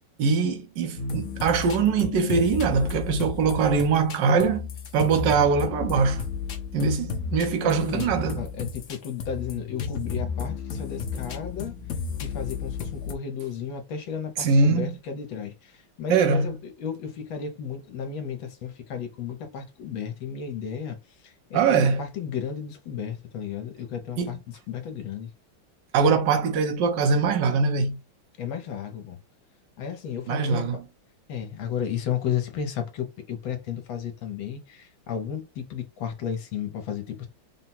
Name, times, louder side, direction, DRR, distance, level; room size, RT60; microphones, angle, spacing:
voice 1, 0.2-4.7 4.9-6.2 6.7-8.5 14.4-14.9 16.1-16.5 21.5-22.1 24.2-24.3 25.9-28.0 30.3-30.9, right 5 dB, 65° right, 1.3 m, -22 dB
sound 1, 1.0-13.1, left 6 dB, 90° left, 0.6 m, -33 dB
voice 2, 7.6-11.7 12.2-15.5 16.0-21.0 21.5-24.4 24.7-25.3 28.4-29.2 29.8-30.6 31.3-37.3, left 8 dB, 70° left, 1.6 m, -33 dB
3.9 x 2.2 x 4.2 m
omnidirectional pair, 2.3 m